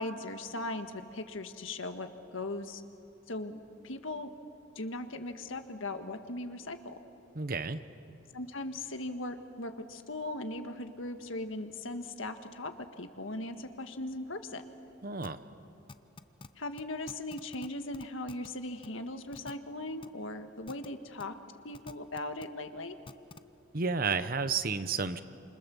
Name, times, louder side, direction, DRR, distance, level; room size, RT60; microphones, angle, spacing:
voice 1, 0.0-2.8 3.3-4.3 4.8-7.0 8.3-12.7 13.0-14.6 16.5-21.3 21.6-23.0, left 2 dB, 80° left, 7 dB, 1.6 m, -39 dB
voice 2, 7.3-7.8 15.0-15.4 23.7-25.2, right 4 dB, 45° right, 11 dB, 1.0 m, -31 dB
sound 1, 15.2-15.3 15.9-16.5 16.8-16.9 17.1-17.7 17.9-18.5 18.8-18.9 19.3-19.5 20.0-20.1 20.7-20.9 21.2-21.3 21.7-22.4 23.1-23.4, left 3 dB, 25° left, 0.6 m, -47 dB
29.5 x 27.5 x 7.1 m, 2.6 s
head